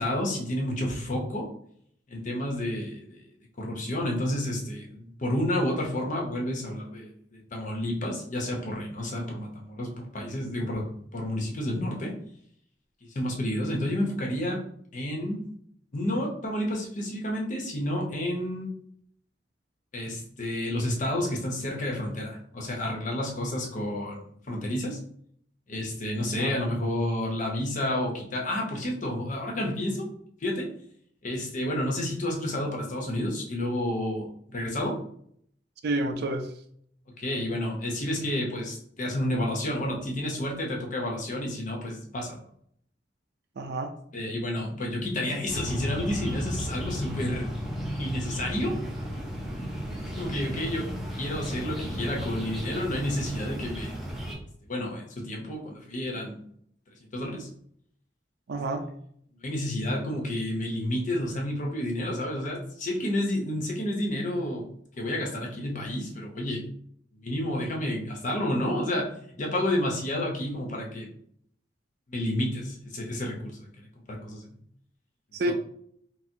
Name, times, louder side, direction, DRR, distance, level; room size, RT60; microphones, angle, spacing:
voice 1, 0.0-1.5 2.1-3.2 3.6-12.2 13.0-14.6 14.9-15.4 15.9-18.7 19.9-25.0 25.7-30.1 30.4-30.7 31.2-35.0 37.2-42.4 44.1-47.5 48.0-48.7 50.2-50.9 51.2-54.0 54.6-56.4 57.0-57.5 59.4-64.7 65.0-66.6 67.1-69.1 69.4-71.1 72.1-74.5, left 1 dB, 45° left, 0 dB, 0.8 m, -30 dB
voice 2, 35.8-36.5 43.6-43.9 58.5-58.8 75.3-75.5, right 2 dB, 60° right, 6 dB, 0.4 m, -29 dB
sound 1, 45.5-54.4, equal, ahead, 0.7 m, -34 dB
4.2 x 2.0 x 2.7 m, 0.66 s
head